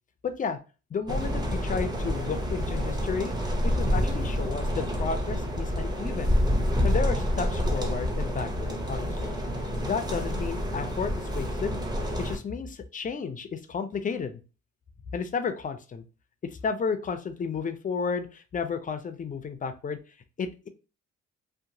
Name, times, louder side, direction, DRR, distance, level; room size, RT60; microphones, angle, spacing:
voice 1, 0.2-0.6 0.9-3.3 3.6-6.4 6.8-9.4 9.8-11.8 12.2-14.4 15.1-16.0 16.5-20.0 20.4-20.7, left 5 dB, 30° left, 9 dB, 0.4 m, -32 dB
sound 1, 1.1-12.4, equal, 15° right, 0.6 m, -28 dB
2.8 x 2.1 x 2.6 m, 0.33 s
cardioid pair, 90°, 30 cm